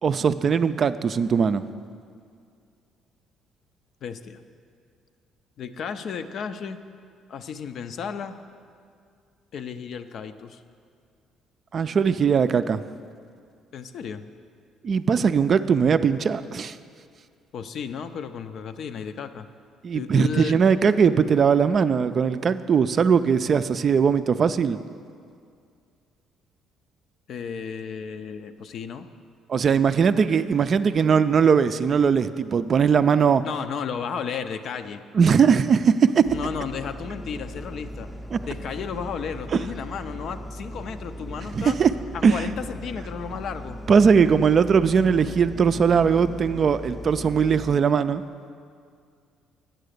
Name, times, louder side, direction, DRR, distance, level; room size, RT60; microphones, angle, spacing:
voice 1, 0.0-1.6 11.7-12.8 14.8-16.8 19.8-24.8 29.5-33.4 35.1-36.2 38.3-38.4 39.5-39.6 41.5-41.9 42.2-42.5 43.9-48.2, right 6 dB, 45° right, 12 dB, 0.3 m, -20 dB
voice 2, 4.0-4.4 5.6-6.8 7.3-8.4 9.5-10.6 13.7-14.2 17.5-19.5 19.9-20.5 27.3-29.1 33.4-35.0 36.3-38.1 38.4-41.7 42.1-43.8, left 6 dB, 60° left, 9 dB, 0.5 m, -33 dB
sound 1, 36.3-47.8, equal, 10° left, 0.6 m, -38 dB
9.0 x 6.7 x 6.5 m, 2.2 s
cardioid pair, 85°, 0 cm